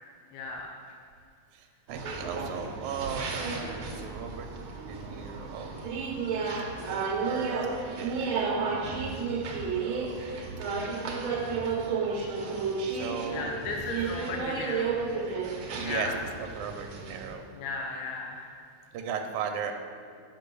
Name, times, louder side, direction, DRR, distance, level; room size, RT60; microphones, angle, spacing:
voice 1, 0.3-0.7 13.3-14.9 15.8-16.2 17.6-18.6, left 4 dB, 85° left, 0 dB, 2.1 m, -35 dB
voice 2, 1.5-4.5 4.8-5.7 6.4-10.3 12.9-13.6 15.7-16.1 16.4-17.4 18.9-19.7, right 7 dB, 85° right, 5 dB, 2.0 m, -38 dB
sound 1, 1.9-17.3, right 4 dB, 65° right, 1.3 m, -32 dB
7.2 x 5.3 x 6.8 m, 2.4 s
omnidirectional pair, 3.3 m